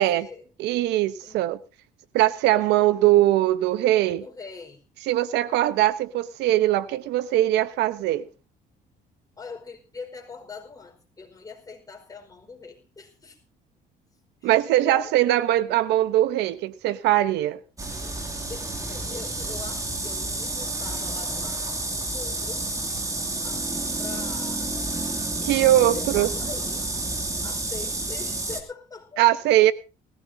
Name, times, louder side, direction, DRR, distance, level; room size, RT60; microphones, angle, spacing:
voice 1, 0.0-0.5 1.2-1.5 4.2-4.8 9.4-13.4 14.4-15.1 17.9-22.7 23.4-24.7 25.8-26.9 27.4-29.6, left 4 dB, 20° left, 4.8 m, -42 dB
voice 2, 0.6-1.6 2.1-4.2 5.1-8.3 14.4-17.6 25.4-26.3 29.2-29.7, right 14 dB, 85° right, 0.9 m, -21 dB
sound 1, 17.8-28.6, right 2 dB, 20° right, 2.7 m, -30 dB
19.5 x 16.0 x 2.8 m
cardioid pair, 110°, 17 cm